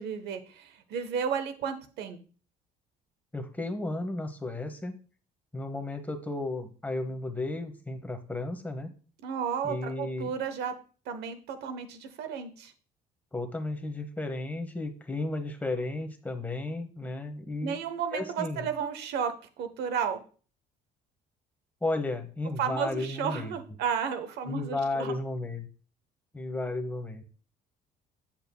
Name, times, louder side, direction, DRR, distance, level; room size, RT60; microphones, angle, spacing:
voice 1, 0.0-2.2 9.2-10.7 11.1-12.7 17.6-20.2 22.6-25.1, right 7 dB, 80° right, 9 dB, 1.0 m, -33 dB
voice 2, 3.3-4.9 5.5-8.9 9.6-10.3 13.3-17.8 18.1-18.7 21.8-23.6 24.5-25.7 26.3-27.2, left 2 dB, 10° left, 6 dB, 1.0 m, -33 dB
7.7 x 7.2 x 2.2 m, 0.38 s
cardioid pair, 110°, 17 cm